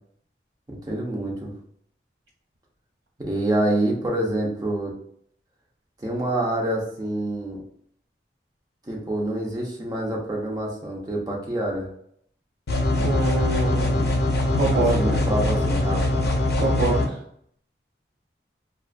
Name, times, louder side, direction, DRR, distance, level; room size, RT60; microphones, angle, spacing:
voice 1, 0.7-1.5 3.2-4.9 6.0-7.6 8.9-11.9 14.7-16.2, right 1 dB, 20° right, -2 dB, 0.6 m, -27 dB
sound 1, 12.7-17.1, left 1 dB, 60° left, 0.5 m, -22 dB
voice 2, 13.0-14.1 14.5-15.2 16.6-17.2, right 2 dB, 65° right, -5 dB, 1.4 m, -26 dB
2.4 x 2.4 x 2.4 m, 0.66 s
head